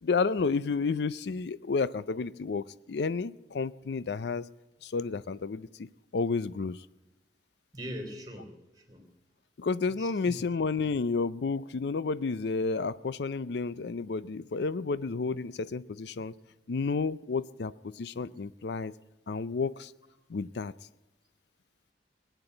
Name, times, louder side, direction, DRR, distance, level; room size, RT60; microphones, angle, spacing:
voice 1, 0.0-4.5 4.8-5.9 6.1-6.9 9.6-16.3 16.7-18.9 19.3-19.9 20.3-20.7, left 4 dB, 65° left, 17 dB, 0.4 m, -31 dB
voice 2, 7.7-9.0 10.0-10.4, equal, 20° right, 5 dB, 3.2 m, -42 dB
20.0 x 9.1 x 7.8 m, 1.1 s
head